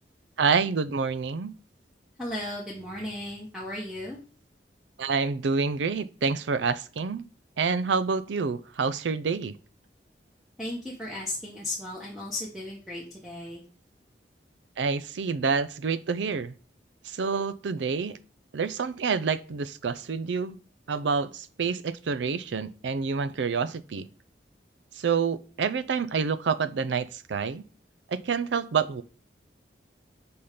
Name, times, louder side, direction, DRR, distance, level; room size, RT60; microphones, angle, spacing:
voice 1, 0.4-1.5 5.0-7.2 7.6-9.5 14.8-16.5 17.0-18.2 18.5-20.6 20.9-24.1 24.9-27.6 28.1-29.0, right 5 dB, 90° right, 0.5 m, -28 dB
voice 2, 2.2-4.2 10.6-13.6, left 1 dB, ahead, 1.0 m, -35 dB
5.5 x 4.3 x 5.0 m
head